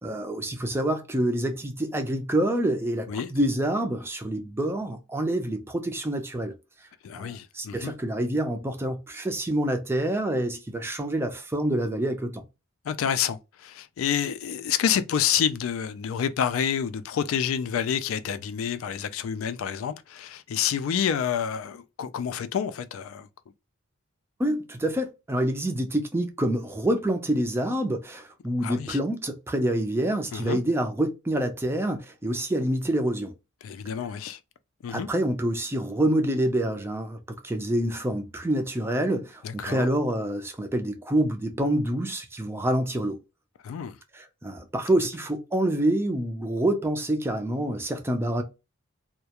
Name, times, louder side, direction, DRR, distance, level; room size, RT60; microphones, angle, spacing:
voice 1, 0.0-6.5 7.1-12.4 24.4-33.3 34.9-43.2 44.1-48.4, right 1 dB, 10° right, 0.4 m, -27 dB
voice 2, 7.0-7.9 12.9-23.3 28.6-29.0 30.3-30.6 33.6-34.4 34.8-35.1 39.4-39.9 43.6-44.0, left 8 dB, 70° left, 0.3 m, -28 dB
2.3 x 2.1 x 2.8 m
head